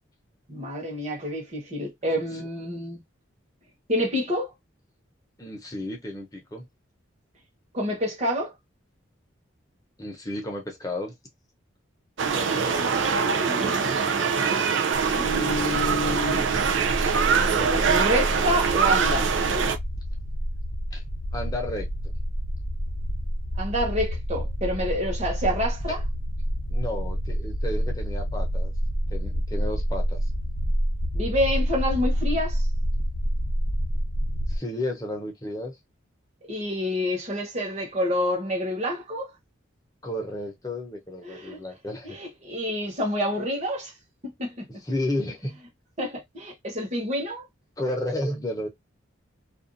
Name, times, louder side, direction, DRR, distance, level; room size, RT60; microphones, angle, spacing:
voice 1, 0.5-3.0 3.9-4.5 7.7-8.5 12.3-13.2 13.4-14.1 15.1-16.5 17.5-19.3 23.6-26.0 31.1-32.6 36.5-39.3 41.2-41.6 42.0-43.9 44.4-44.6 46.0-47.5, equal, 35° right, 1.1 m, -28 dB
voice 2, 5.4-6.7 10.0-11.1 20.9-21.0 21.3-22.1 26.7-28.7 29.1-30.2 34.5-35.8 40.0-42.2 44.8-45.6 47.8-48.7, left 1 dB, 15° left, 0.8 m, -32 dB
sound 1, 12.2-19.8, right 6 dB, 65° right, 0.5 m, -23 dB
sound 2, 15.0-34.6, equal, 45° left, 0.8 m, -28 dB
2.5 x 2.4 x 2.6 m
head